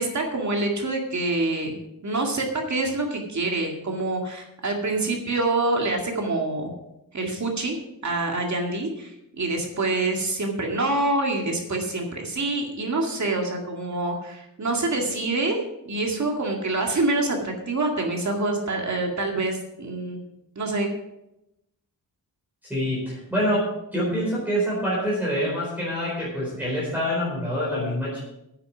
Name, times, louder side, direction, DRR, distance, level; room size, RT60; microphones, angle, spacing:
voice 1, 0.0-1.8 2.0-6.7 7.1-7.8 8.0-15.6 15.9-20.2 20.6-20.9, right 2 dB, 50° right, 1 dB, 2.1 m, -26 dB
voice 2, 22.6-28.2, equal, 5° right, -7 dB, 4.3 m, -26 dB
9.7 x 8.5 x 6.0 m, 0.86 s
wide cardioid pair, 170°, 35 cm